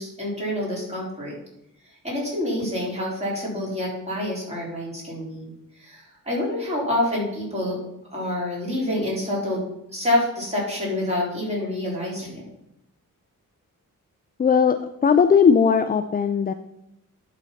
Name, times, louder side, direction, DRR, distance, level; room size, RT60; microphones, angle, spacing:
voice 1, 0.0-1.3 1.8-7.8 8.1-9.6 9.9-12.4, left 1 dB, 20° right, -5 dB, 3.6 m, -27 dB
voice 2, 14.4-16.5, left 6 dB, 30° left, 9 dB, 0.4 m, -18 dB
11.0 x 4.2 x 5.7 m, 0.84 s
wide cardioid pair, 140°, 33 cm